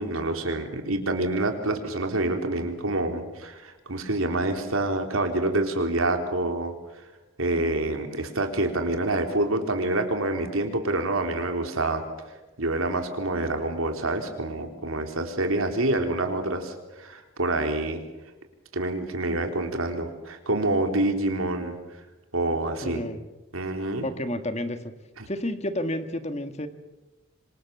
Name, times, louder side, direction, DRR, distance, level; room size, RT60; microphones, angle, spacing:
voice 1, 0.0-6.7 7.4-12.0 12.6-18.0 18.7-21.8 22.3-23.0 23.5-24.1 25.2-25.3, right 2 dB, 85° right, 5 dB, 3.8 m, -27 dB
voice 2, 22.8-23.2 24.0-24.8 25.3-26.7, left 1 dB, 30° left, 9 dB, 1.8 m, -30 dB
26.5 x 25.5 x 7.3 m, 1.1 s
head